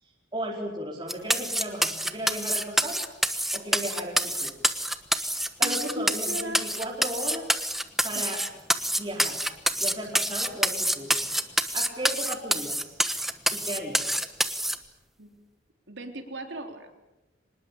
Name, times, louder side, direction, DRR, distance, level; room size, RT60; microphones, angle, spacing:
voice 1, 0.0-3.0 3.5-4.5 5.6-7.6 8.0-8.4 9.0-9.4 9.8-11.2 11.7-13.0 13.5-14.1, right 1 dB, 25° right, -2 dB, 4.4 m, -35 dB
sound 1, 1.1-14.8, right 1 dB, ahead, 1.1 m, -26 dB
voice 2, 5.6-6.6 8.2-8.3 15.2-15.3 15.9-16.9, right 1 dB, 70° right, 5 dB, 3.7 m, -37 dB
25.0 x 20.5 x 8.7 m, 1.0 s
head